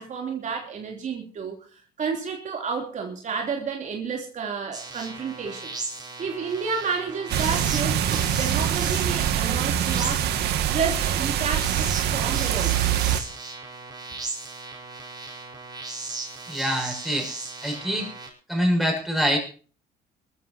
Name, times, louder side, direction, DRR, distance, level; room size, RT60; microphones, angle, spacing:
voice 1, 0.0-1.6 2.0-5.7 6.2-10.3 10.7-12.8, right 5 dB, 45° right, 2 dB, 3.1 m, -31 dB
sound 1, 4.7-18.3, right 3 dB, 25° right, 4.8 m, -37 dB
sound 2, 7.3-13.2, right 10 dB, 80° right, 1.9 m, -24 dB
voice 2, 16.5-17.3 17.6-18.1 18.5-19.4, equal, ahead, 1 dB, 6.7 m, -25 dB
23.5 x 14.0 x 2.8 m, 0.39 s
cardioid pair, 110°, 17 cm